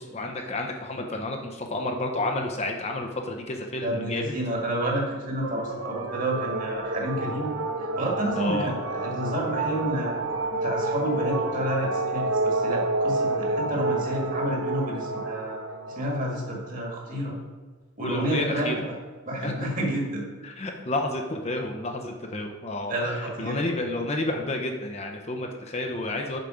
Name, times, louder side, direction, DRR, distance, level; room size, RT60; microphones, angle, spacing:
voice 1, 0.0-4.3 8.4-8.7 18.0-18.8 19.4-19.7 20.4-26.4, left 2 dB, 30° left, 3 dB, 0.6 m, -30 dB
voice 2, 3.8-7.5 8.0-10.2 10.6-15.6 16.0-17.3 18.0-18.8 19.3-20.2 22.9-23.6, right 1 dB, 40° right, -1 dB, 1.7 m, -29 dB
sound 1, 5.4-17.2, right 2 dB, 75° right, 0.9 m, -29 dB
6.8 x 5.7 x 4.9 m, 1.5 s
head